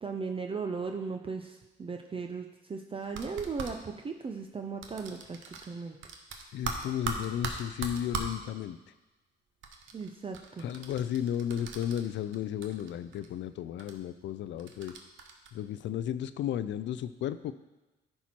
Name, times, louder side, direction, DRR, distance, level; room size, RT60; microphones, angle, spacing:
voice 1, 0.0-6.0 9.9-10.7, right 5 dB, 25° right, 5 dB, 0.5 m, -37 dB
sound 1, 3.0-3.7 4.8-5.7 6.0-8.4 9.6-12.4 12.6-13.3 13.8-13.9 14.6-15.5, right 5 dB, 75° right, 1.0 m, -39 dB
voice 2, 6.5-8.8 10.6-14.9 15.5-17.5, left 10 dB, 70° left, 13 dB, 0.4 m, -34 dB
10.0 x 4.4 x 4.4 m, 1.1 s
cardioid pair, 90°, 20 cm